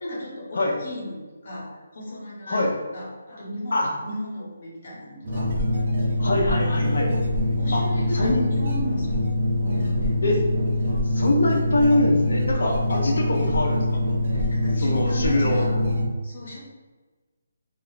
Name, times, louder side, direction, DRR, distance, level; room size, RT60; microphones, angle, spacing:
voice 1, 0.0-5.5 7.4-10.3 10.8-11.0 13.2-13.4 14.2-15.9 16.2-16.6, left 1 dB, 50° left, -3 dB, 1.0 m, -36 dB
sound 1, 5.2-16.1, left 1 dB, 45° right, 0.8 m, -24 dB
voice 2, 6.2-7.1 7.7-7.8 8.1-8.4 10.2-10.4 11.1-14.0 14.8-15.7, left 1 dB, 70° left, 0 dB, 0.6 m, -23 dB
2.4 x 2.2 x 3.9 m, 1.3 s
hypercardioid pair, 165°, 0 cm